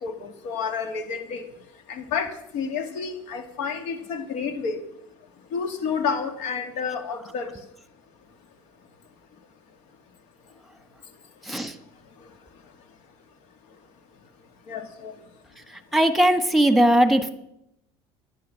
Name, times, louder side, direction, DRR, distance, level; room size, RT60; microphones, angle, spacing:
voice 1, 0.0-1.4 1.9-4.8 5.5-7.5 14.7-15.1, left 6 dB, 70° left, 7 dB, 2.5 m, -30 dB
voice 2, 15.9-17.3, right 1 dB, ahead, 10 dB, 1.4 m, -19 dB
11.5 x 10.5 x 7.5 m, 0.79 s
supercardioid pair, 115°, 12 cm